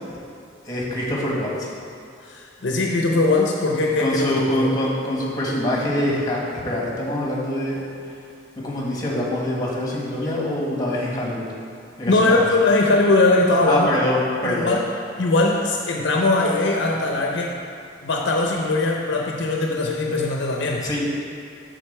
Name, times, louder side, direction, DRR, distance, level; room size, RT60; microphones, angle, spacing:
voice 1, 0.6-1.7 4.0-7.8 8.6-11.5 12.0-12.5 13.7-14.7 20.8-21.2, left 1 dB, 20° left, -4 dB, 1.5 m, -24 dB
voice 2, 2.2-4.7 12.0-13.9 14.4-14.8 15.2-17.6 18.0-20.9, left 2 dB, 65° left, 0 dB, 0.7 m, -20 dB
7.9 x 3.8 x 6.6 m, 2.5 s
head